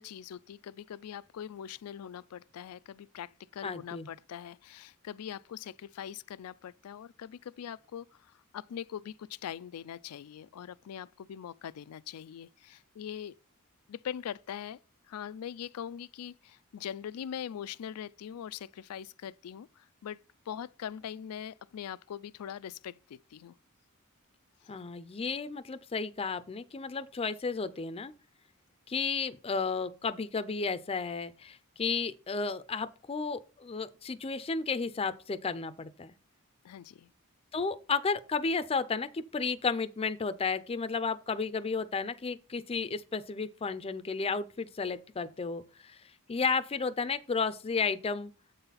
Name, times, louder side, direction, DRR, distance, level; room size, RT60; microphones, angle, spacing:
voice 1, 0.0-13.4 13.9-14.8 15.1-20.2 20.5-23.5 24.6-24.8 36.6-37.1, left 9 dB, 85° left, 0.4 m, -42 dB
voice 2, 3.6-4.1 24.7-28.1 28.9-36.1 37.5-46.0 46.3-48.3, left 4 dB, 25° left, 0.4 m, -33 dB
7.7 x 4.1 x 5.6 m
head